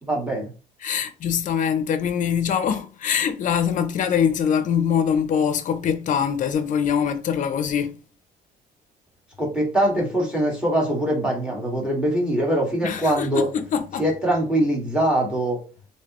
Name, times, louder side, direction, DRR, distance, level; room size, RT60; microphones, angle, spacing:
voice 1, 0.0-0.5 9.4-13.5 14.0-15.6, right 1 dB, 5° right, 1.7 m, -22 dB
voice 2, 0.8-8.0 12.8-14.0, left 8 dB, 50° left, 0.6 m, -23 dB
3.3 x 2.8 x 2.9 m
cardioid pair, 110°, 17 cm